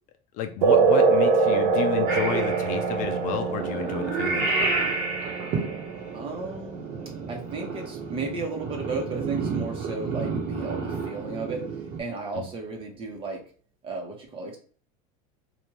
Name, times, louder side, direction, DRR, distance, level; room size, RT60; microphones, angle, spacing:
voice 1, 0.3-4.9 12.3-12.5, left 9 dB, 50° left, 7 dB, 0.5 m, -32 dB
sound 1, 0.6-7.6, right 4 dB, 85° right, 0.6 m, -24 dB
Purr / Meow, 2.1-12.0, right 4 dB, 55° right, 1.1 m, -31 dB
voice 2, 6.1-6.8 7.3-11.6 12.0-13.4 13.8-14.6, right 3 dB, 30° right, 1 dB, 1.1 m, -34 dB
3.5 x 2.6 x 2.9 m, 0.42 s
supercardioid pair, 125°, 17 cm